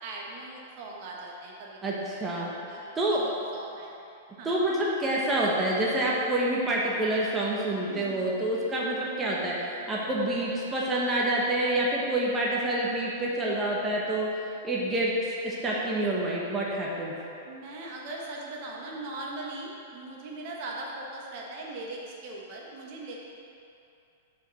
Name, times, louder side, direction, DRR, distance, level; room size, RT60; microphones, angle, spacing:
voice 1, 0.0-2.1 2.7-4.0 4.4-4.5 7.9-8.3 9.3-9.6 17.4-23.2, right 2 dB, 50° right, -2 dB, 1.3 m, -40 dB
voice 2, 1.8-3.2 4.4-9.5 9.9-15.1 15.4-17.1, right 1 dB, 15° right, -5 dB, 1.2 m, -27 dB
5.5 x 5.2 x 6.2 m, 2.6 s
hypercardioid pair, 130°, 0 cm